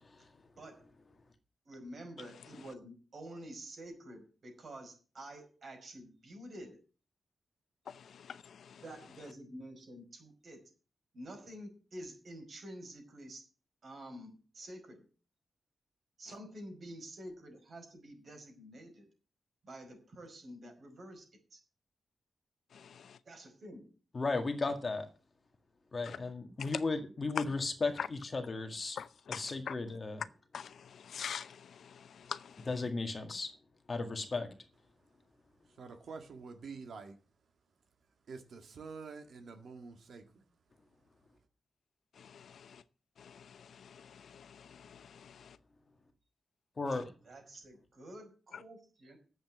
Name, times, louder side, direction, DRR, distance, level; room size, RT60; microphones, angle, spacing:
voice 1, 0.6-0.9 1.6-6.8 8.7-10.6 11.1-13.5 13.8-15.1 16.2-19.1 19.6-21.6 23.2-24.0 47.2-49.2, right 1 dB, 55° right, 5.2 m, -49 dB
voice 2, 7.9-8.8 22.7-23.2 26.0-26.2 26.7-26.8 27.4-27.5 28.0-28.1 29.0-29.7 30.5-32.7 42.2-42.8 43.2-45.6, left 7 dB, 90° left, 0.7 m, -44 dB
voice 3, 24.1-25.1 25.9-29.0 29.3-30.2 32.7-33.5 33.9-34.5 46.8-47.1, left 3 dB, 35° left, 1.9 m, -35 dB
voice 4, 35.8-37.2 38.3-40.4, right 4 dB, 75° right, 1.9 m, -47 dB
10.5 x 8.0 x 7.3 m
wide cardioid pair, 155°, 0 cm